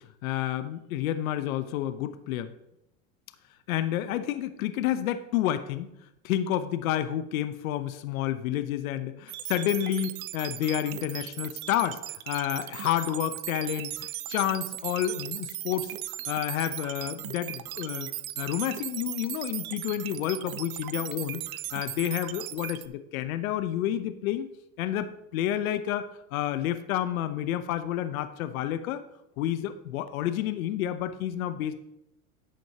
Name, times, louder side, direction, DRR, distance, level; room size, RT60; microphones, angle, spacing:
voice 1, 0.2-2.5 3.7-5.9 6.2-12.0 12.3-15.9 16.3-18.1 18.4-21.4 21.7-24.5 24.8-26.1 26.3-29.0 29.4-31.8, left 11 dB, 80° left, 11 dB, 0.8 m, -30 dB
sound 1, 9.3-22.9, right 15 dB, 90° right, 0.6 m, -37 dB
11.5 x 7.8 x 2.8 m, 0.83 s
supercardioid pair, 110°, 41 cm